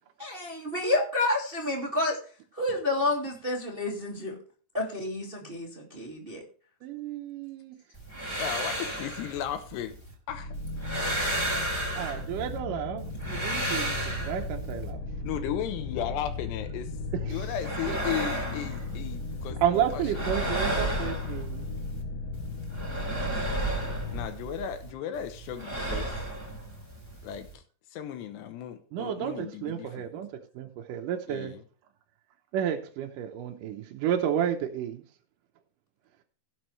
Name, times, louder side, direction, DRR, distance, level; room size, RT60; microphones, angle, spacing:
voice 1, 0.2-2.2 2.5-4.4 4.7-6.4, left 2 dB, 40° right, 0.7 m, -29 dB
voice 2, 6.8-7.8 12.0-15.0 17.1-17.5 17.9-18.0 19.6-21.6 28.9-31.6 32.5-35.0, right 9 dB, 75° right, 2.0 m, -31 dB
sound 1, 7.9-10.1 10.5-12.6 13.0-14.9 17.3-19.5 19.7-22.0 22.3-24.9 25.1-27.5, right 1 dB, 25° left, 0.6 m, -33 dB
voice 3, 8.4-10.0 10.3-10.5 15.2-16.9 17.2-20.2 24.1-26.2 27.2-27.6 27.9-30.1 31.3-31.6, left 10 dB, 85° left, 3.1 m, -35 dB
sound 2, 10.3-24.3, left 3 dB, 65° left, 3.2 m, -36 dB
17.0 x 7.1 x 3.2 m
omnidirectional pair, 4.8 m